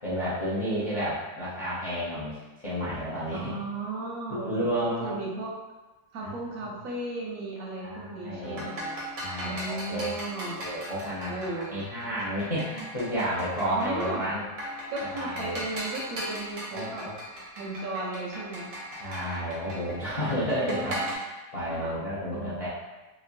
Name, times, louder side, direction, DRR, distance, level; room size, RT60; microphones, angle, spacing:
voice 1, 0.0-3.5 4.3-5.2 6.6-6.7 7.8-8.7 9.2-10.1 10.6-14.4 15.1-15.6 16.7-17.1 19.0-22.7, equal, 45° left, -11 dB, 0.4 m, -31 dB
voice 2, 3.3-5.5 6.1-9.0 9.4-10.6 11.3-11.8 13.7-14.3 14.9-17.0 17.6-18.7 19.1-19.3 20.2-21.1 21.6-22.0 22.3-22.6, right 2 dB, 90° right, -3 dB, 1.1 m, -36 dB
sound 1, 8.4-21.2, right 1 dB, 50° right, 0.6 m, -38 dB
2.9 x 2.3 x 2.5 m, 1.1 s
omnidirectional pair, 1.5 m